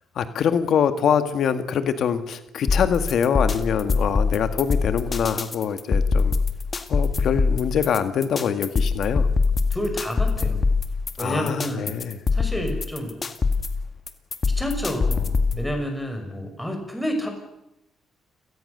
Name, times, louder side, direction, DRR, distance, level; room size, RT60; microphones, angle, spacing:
voice 1, 0.2-6.4 6.9-9.3 11.2-12.2, left 7 dB, 65° left, 9 dB, 1.8 m, -24 dB
sound 1, 2.7-15.7, left 4 dB, 35° left, 2.2 m, -23 dB
voice 2, 9.7-10.6 11.2-11.9 12.3-13.1 14.6-17.3, equal, 5° left, 4 dB, 6.1 m, -29 dB
29.0 x 18.5 x 6.8 m, 0.88 s
cardioid pair, 90°, 0 cm